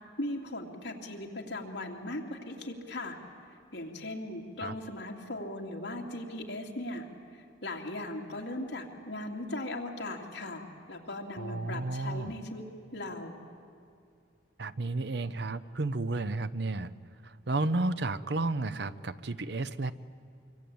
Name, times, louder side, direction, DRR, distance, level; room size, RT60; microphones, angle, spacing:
voice 1, 0.2-3.2 3.7-7.1 7.3-12.6 12.9-13.4, left 1 dB, 70° left, 0 dB, 2.8 m, -38 dB
voice 2, 11.4-12.3 14.6-16.9 17.2-19.9, right 2 dB, 60° right, 13 dB, 0.7 m, -32 dB
24.5 x 24.5 x 8.7 m, 2.4 s
head